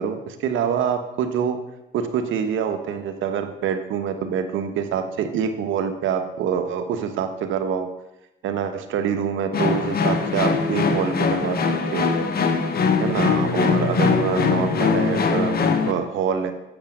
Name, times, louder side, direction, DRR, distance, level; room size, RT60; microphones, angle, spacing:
voice 1, 0.0-1.6 1.9-7.9 8.4-11.6 11.9-12.1 13.0-16.5, right 7 dB, 80° right, 7 dB, 1.2 m, -25 dB
sound 1, 9.5-15.9, left 5 dB, 50° left, 1.3 m, -21 dB
8.5 x 6.9 x 7.4 m, 0.93 s
cardioid pair, 90°, 20 cm